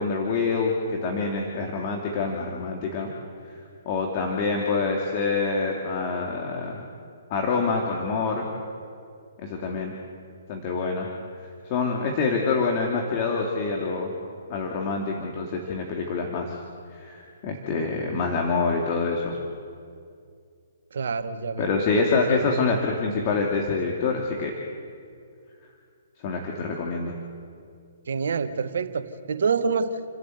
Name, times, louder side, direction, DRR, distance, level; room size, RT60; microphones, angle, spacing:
voice 1, 0.0-3.1 3.8-6.8 7.3-8.5 9.4-9.9 10.5-11.1 11.6-14.1 14.5-16.6 16.9-19.4 21.6-24.5 26.2-27.1, left 4 dB, 40° left, 0 dB, 2.9 m, -26 dB
voice 2, 20.9-21.7 22.3-22.5 28.1-29.9, right 5 dB, 65° right, 9 dB, 1.5 m, -27 dB
30.0 x 12.5 x 8.1 m, 2.3 s
figure-of-eight pair, 125°, 0 cm